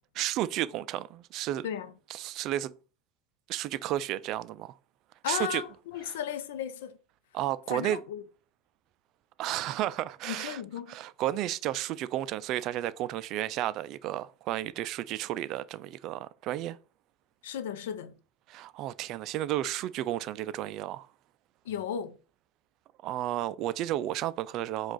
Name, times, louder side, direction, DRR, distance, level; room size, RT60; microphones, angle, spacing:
voice 1, 0.2-1.7 2.1-2.7 3.5-4.8 5.3-5.6 6.0-6.1 7.3-8.0 9.4-10.6 10.9-16.8 18.5-21.1 23.0-24.9, right 13 dB, 50° right, 0.3 m, -32 dB
voice 2, 5.2-6.9 7.7-8.2 10.3-11.0 17.4-18.1 21.7-22.2, left 9 dB, 75° left, 0.6 m, -35 dB
4.7 x 2.4 x 3.8 m
hypercardioid pair, 100°, 0 cm